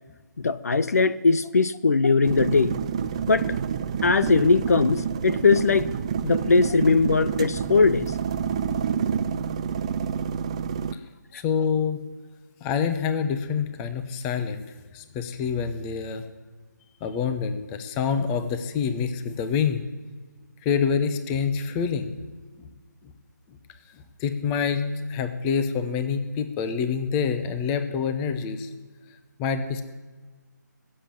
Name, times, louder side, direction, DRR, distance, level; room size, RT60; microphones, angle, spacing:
voice 1, 0.4-2.8 3.3-3.6 4.0-5.9 6.2-8.1, left 4 dB, 55° left, 14 dB, 0.7 m, -20 dB
sound 1, 2.2-10.9, right 7 dB, 20° right, 0.4 m, -28 dB
voice 2, 11.3-12.0 12.6-14.6 14.9-16.2 17.0-19.8 20.6-22.2 22.6-22.7 23.0-23.1 23.9-24.8 25.1-28.7 29.4-29.8, left 6 dB, 15° left, 9 dB, 0.8 m, -26 dB
20.5 x 7.7 x 9.1 m, 1.3 s
figure-of-eight pair, 155°, 10 cm